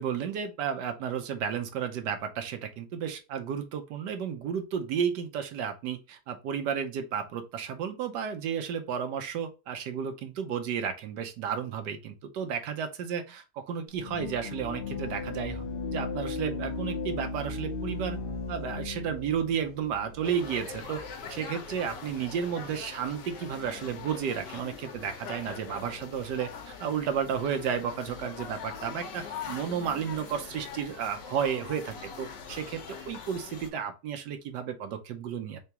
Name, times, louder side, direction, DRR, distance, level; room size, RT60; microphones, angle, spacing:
voice 1, 0.0-15.6 15.9-18.2 18.5-21.0 21.3-35.6, right 7 dB, 80° right, 1.3 m, -32 dB
sound 1, 13.9-21.1, left 3 dB, 55° left, 0.6 m, -36 dB
sound 2, 20.2-33.7, left 6 dB, 85° left, 1.5 m, -42 dB
3.9 x 3.5 x 2.8 m
omnidirectional pair, 1.8 m